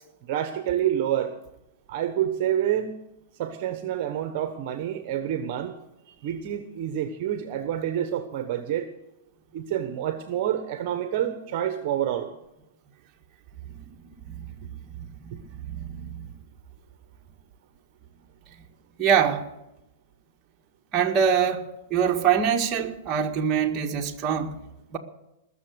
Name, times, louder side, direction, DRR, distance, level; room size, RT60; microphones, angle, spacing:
voice 1, 0.2-1.3 1.9-3.0 3.3-5.7 6.1-8.9 9.5-12.3 15.3-15.4, right 10 dB, 50° right, 1.2 m, -28 dB
voice 2, 14.3-14.7 15.0-15.4 15.7-16.3 19.0-19.5 20.9-24.6 24.9-25.0, right 7 dB, 30° right, 1.8 m, -24 dB
20.5 x 7.1 x 8.0 m
hypercardioid pair, 135°, 0 cm